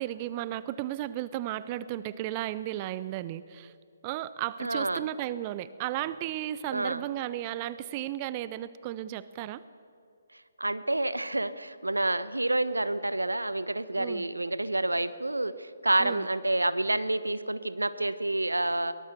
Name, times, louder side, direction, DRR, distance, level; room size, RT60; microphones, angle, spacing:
voice 1, 0.0-3.7 4.0-9.6 14.0-14.2 16.0-16.3, right 13 dB, 25° right, 16 dB, 0.5 m, -34 dB
voice 2, 4.6-5.1 6.7-7.0 10.6-18.9, right 2 dB, 80° right, 14 dB, 1.1 m, -28 dB
23.0 x 19.0 x 6.8 m, 2.4 s
figure-of-eight pair, 140°, 0 cm